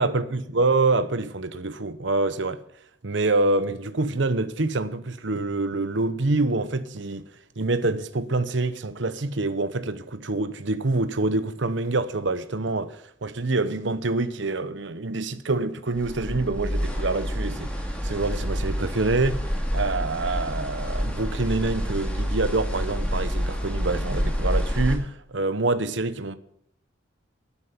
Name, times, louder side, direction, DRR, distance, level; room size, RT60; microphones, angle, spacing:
voice 1, 0.0-2.6 3.0-7.2 7.6-17.7 18.0-26.4, right 2 dB, 70° right, 0.9 m, -26 dB
sound 1, 15.9-25.0, equal, 5° left, 2.4 m, -28 dB
11.5 x 10.5 x 5.8 m
head